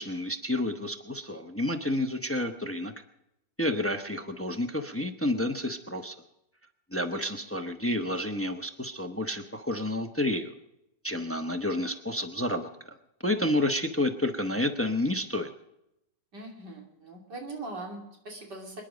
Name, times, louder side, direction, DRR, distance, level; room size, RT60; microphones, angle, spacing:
voice 1, 0.0-2.9 3.6-6.1 6.9-10.5 11.0-12.7 13.2-15.5, left 1 dB, 15° left, 7 dB, 0.5 m, -30 dB
voice 2, 16.3-18.8, right 2 dB, 70° right, 0 dB, 3.5 m, -41 dB
26.5 x 10.0 x 5.1 m, 0.85 s
omnidirectional pair, 1.9 m